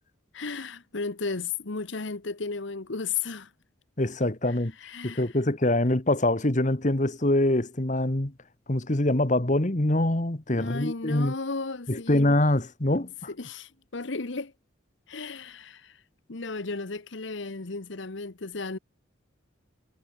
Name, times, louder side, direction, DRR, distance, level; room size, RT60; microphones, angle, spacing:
voice 1, 0.3-3.5 4.5-5.4 10.6-12.2 13.3-14.5 15.1-16.0 16.3-18.8, left 4 dB, 70° left, 1.1 m, -34 dB
voice 2, 4.0-4.7 5.0-8.3 8.7-11.3 11.9-13.3, left 1 dB, 40° left, 1.5 m, -24 dB
head